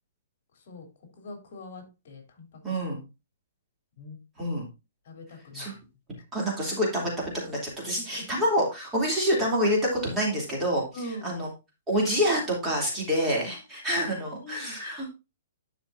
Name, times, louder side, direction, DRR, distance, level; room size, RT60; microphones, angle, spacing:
voice 1, 0.5-0.9 1.2-2.8 4.0-4.2 5.0-5.8 8.0-8.2 10.9-11.4 14.1-14.8, equal, 50° left, 4 dB, 3.1 m, -43 dB
voice 2, 2.6-3.0 4.4-4.7 5.5-5.7 6.3-7.1 7.4-10.8 11.2-11.5 11.9-15.1, equal, 10° right, -3 dB, 2.9 m, -27 dB
11.5 x 5.8 x 2.6 m, 0.26 s
hypercardioid pair, 165°, 0 cm